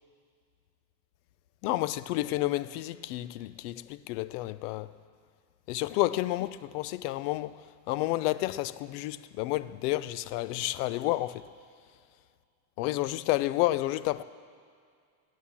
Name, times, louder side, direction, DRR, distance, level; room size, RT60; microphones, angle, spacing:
voice 1, 1.6-4.9 5.7-11.5 12.8-14.2, left 16 dB, 70° left, 0.6 m, -30 dB
13.0 x 9.3 x 7.1 m
supercardioid pair, 160°, 49 cm